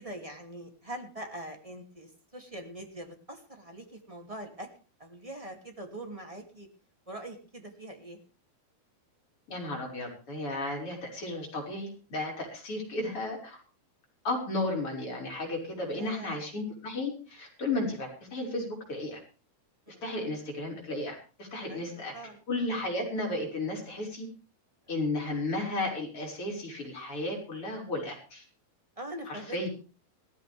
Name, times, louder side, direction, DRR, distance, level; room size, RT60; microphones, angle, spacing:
voice 1, 0.0-4.7 5.0-6.7 7.1-8.2 15.9-16.4 19.9-20.0 21.7-22.4 24.9-25.0 29.0-29.7, right 1 dB, 10° right, 3 dB, 2.1 m, -43 dB
voice 2, 9.5-13.6 14.2-19.2 20.0-22.1 22.5-24.3 24.9-28.4 29.3-29.7, left 2 dB, 35° left, -1 dB, 6.7 m, -34 dB
18.5 x 15.0 x 3.5 m, 0.36 s
omnidirectional pair, 4.2 m